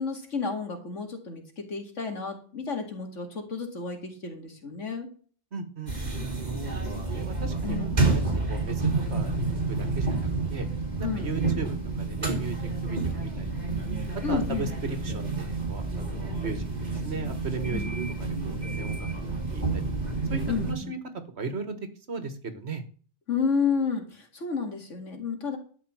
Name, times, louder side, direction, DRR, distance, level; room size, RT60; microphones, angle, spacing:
voice 1, 0.0-5.1 7.6-8.0 11.0-11.3 14.2-14.7 17.7-17.9 20.5-20.9 23.3-25.6, left 5 dB, 80° left, 4 dB, 2.5 m, -31 dB
voice 2, 5.5-5.9 6.4-8.2 8.5-8.8 9.1-10.7 11.0-13.8 14.3-17.8 18.2-19.9 20.3-21.0 21.4-21.8 22.1-22.8, right 4 dB, 60° right, 10 dB, 1.7 m, -37 dB
sound 1, 5.9-20.7, right 3 dB, 35° right, 2.6 m, -29 dB
12.5 x 4.9 x 7.4 m, 0.42 s
omnidirectional pair, 1.2 m